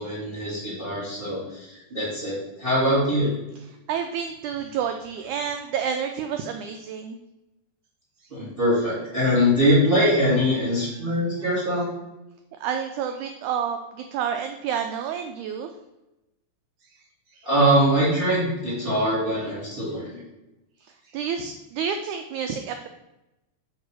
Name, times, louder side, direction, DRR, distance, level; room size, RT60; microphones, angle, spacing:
voice 1, 0.0-3.3 8.3-11.9 17.4-20.2, equal, 20° right, -7 dB, 1.8 m, -22 dB
voice 2, 3.9-7.2 8.2-8.3 11.1-11.2 12.6-15.7 16.8-16.9 17.3-17.5 20.8-22.9, right 7 dB, 85° right, 6 dB, 1.7 m, -29 dB
6.3 x 4.0 x 6.0 m, 0.97 s
omnidirectional pair, 3.9 m